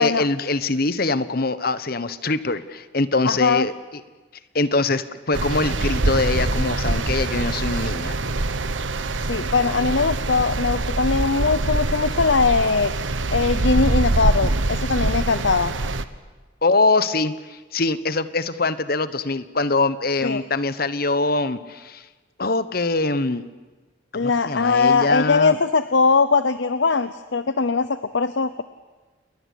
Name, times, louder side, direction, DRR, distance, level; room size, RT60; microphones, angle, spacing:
voice 1, 0.0-4.0 4.5-8.2 16.6-22.0 22.4-23.4 24.1-25.6, left 3 dB, 50° left, 14 dB, 1.2 m, -23 dB
voice 2, 3.2-3.7 9.3-12.9 13.3-15.7 20.2-20.4 24.1-28.6, left 4 dB, 75° left, 13 dB, 0.8 m, -20 dB
sound 1, 5.3-16.1, right 2 dB, 85° right, 1.3 m, -24 dB
28.5 x 21.0 x 8.5 m, 1.3 s
head